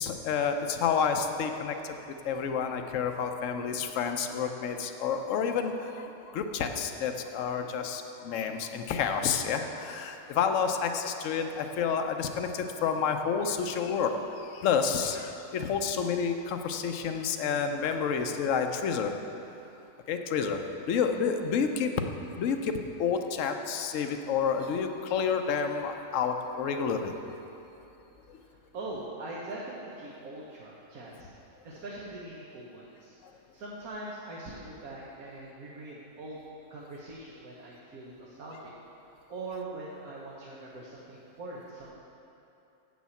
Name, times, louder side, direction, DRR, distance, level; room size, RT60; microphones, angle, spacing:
voice 1, 0.0-1.9 2.2-19.1 20.1-20.6 20.9-21.9 22.4-22.7 23.0-27.4 28.3-28.4, left 6 dB, 65° left, 6 dB, 1.0 m, -29 dB
voice 2, 28.3-31.3 31.6-33.2 33.5-36.4 36.7-38.7 39.0-41.9, right 2 dB, 80° right, -5 dB, 1.6 m, -42 dB
8.1 x 6.3 x 7.0 m, 3.0 s
omnidirectional pair, 1.5 m